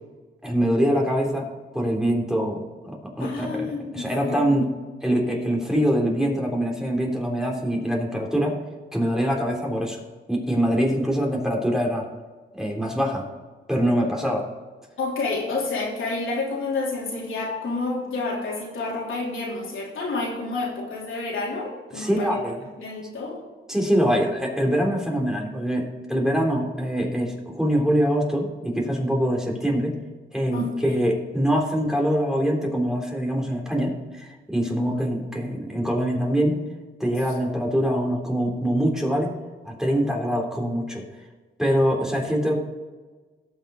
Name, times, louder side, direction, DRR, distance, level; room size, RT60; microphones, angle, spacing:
voice 1, 0.4-1.5 1.7-4.7 5.0-8.6 8.9-10.0 10.3-12.1 12.5-13.2 13.7-14.5 21.9-22.6 23.7-30.0 30.3-36.7 37.0-39.3 39.6-41.0 41.6-42.6, equal, ahead, -1 dB, 3.4 m, -24 dB
voice 2, 3.2-4.5 15.0-22.5 22.8-23.4 30.5-31.0 34.6-35.0 37.6-37.7, left 3 dB, 75° left, -4 dB, 3.5 m, -29 dB
18.0 x 6.2 x 3.9 m, 1.3 s
cardioid pair, 70°, 21 cm